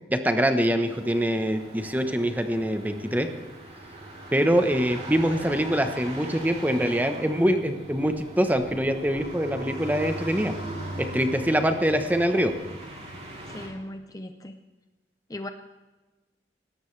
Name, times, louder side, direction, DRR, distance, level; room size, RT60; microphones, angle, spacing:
voice 1, 0.1-3.3 4.3-10.5 11.0-12.5, equal, 10° right, 7 dB, 1.0 m, -24 dB
sound 1, 0.8-13.7, right 1 dB, 40° right, 4.1 m, -40 dB
voice 2, 13.5-14.6 15.3-15.5, left 1 dB, 20° left, 7 dB, 0.6 m, -38 dB
20.5 x 17.5 x 3.3 m, 1.2 s
head